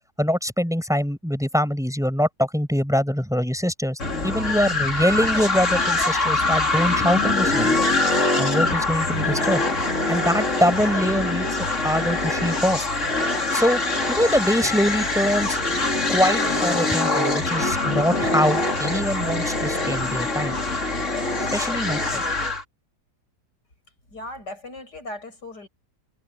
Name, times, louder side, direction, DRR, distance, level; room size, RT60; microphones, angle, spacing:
voice 1, 0.2-7.7 8.4-9.6 10.1-12.8 13.5-13.8 14.1-15.6 16.1-20.6 21.5-22.2, equal, ahead, 7.7 m, -23 dB
sound 1, 4.0-22.6, left 2 dB, 45° left, 3.7 m, -23 dB
voice 2, 24.1-25.7, left 1 dB, 85° left, 8.2 m, -37 dB
omnidirectional pair, 1.8 m